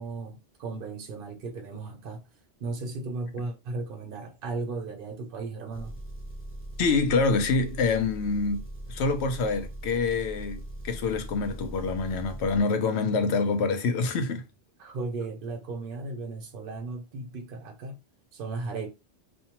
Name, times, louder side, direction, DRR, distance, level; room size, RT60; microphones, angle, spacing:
voice 1, 0.0-2.2 2.6-6.0 14.8-18.0 18.3-18.9, right 3 dB, 60° right, 0.8 m, -36 dB
Engine, 5.7-12.6, right 1 dB, 20° right, 0.4 m, -40 dB
voice 2, 6.8-8.6 8.9-14.5, left 4 dB, 85° left, 0.9 m, -26 dB
2.6 x 2.2 x 2.8 m
omnidirectional pair, 1.1 m